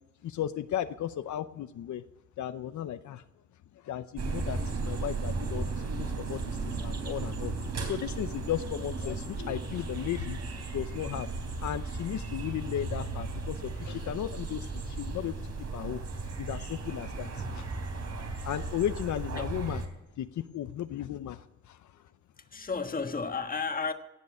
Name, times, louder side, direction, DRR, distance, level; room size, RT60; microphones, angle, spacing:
voice 1, 0.2-2.0 2.4-3.2 3.8-10.4 10.7-15.4 15.7-16.0 16.4-17.7 18.4-19.8 20.2-21.9, left 11 dB, 80° left, 0.7 m, -35 dB
sound 1, 4.2-19.9, right 3 dB, 65° right, 3.5 m, -35 dB
voice 2, 22.4-23.9, left 5 dB, 30° left, 1.5 m, -33 dB
18.0 x 6.8 x 9.6 m
cardioid pair, 100°, 29 cm